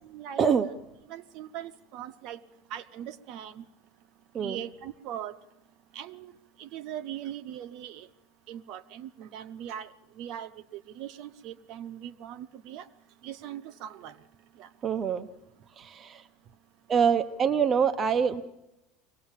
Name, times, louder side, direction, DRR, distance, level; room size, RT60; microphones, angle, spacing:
voice 1, 0.0-0.7 1.1-2.4 2.7-3.6 4.4-5.4 5.9-6.3 6.6-8.1 8.5-9.9 10.2-12.9 13.2-14.1 14.6-14.7, right 10 dB, 50° right, 12 dB, 1.0 m, -40 dB
voice 2, 14.8-15.3 15.8-16.3 16.9-18.4, right 7 dB, 25° right, 9 dB, 0.8 m, -25 dB
23.5 x 18.0 x 7.4 m, 0.91 s
supercardioid pair, 160°, 0 cm